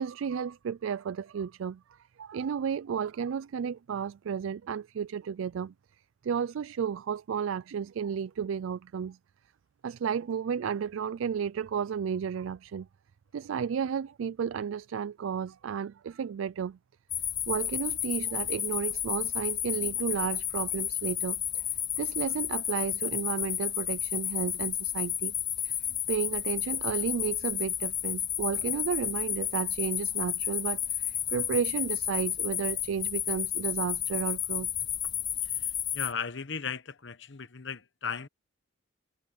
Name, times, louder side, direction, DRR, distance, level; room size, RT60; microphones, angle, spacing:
voice 1, 0.0-1.8 2.2-5.7 6.2-9.2 9.8-12.9 13.3-16.8 17.5-21.6 22.0-25.3 25.6-25.8 26.1-34.7, right 7 dB, 85° right, 0.4 m, -33 dB
sound 1, 17.1-36.1, left 10 dB, 20° left, 0.3 m, -32 dB
voice 2, 35.4-38.3, left 6 dB, 65° left, 1.1 m, -37 dB
head